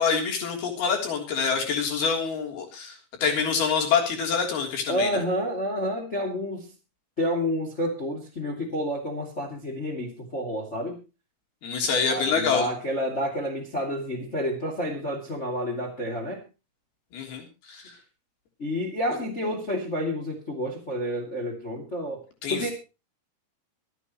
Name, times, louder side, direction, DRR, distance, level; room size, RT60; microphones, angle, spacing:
voice 1, 0.0-3.0 3.2-5.2 11.6-12.7 17.1-17.9 22.4-22.7, left 6 dB, 75° left, 2 dB, 5.3 m, -26 dB
voice 2, 4.9-6.7 7.2-11.0 12.1-16.4 18.6-22.2 22.5-22.7, equal, 20° left, 2 dB, 2.4 m, -29 dB
25.0 x 9.0 x 3.1 m, 0.30 s
omnidirectional pair, 4.5 m